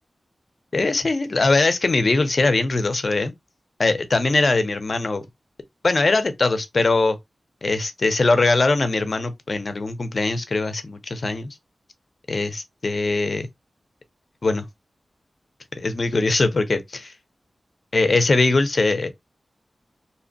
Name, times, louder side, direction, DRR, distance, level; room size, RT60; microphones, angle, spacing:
voice 1, 0.7-3.3 3.8-5.2 5.8-7.2 7.6-11.5 12.3-13.5 14.4-14.6 15.8-17.1 17.9-19.1, left 3 dB, 55° left, 0.5 m, -21 dB
2.8 x 2.1 x 2.6 m
cardioid pair, 55°, 0 cm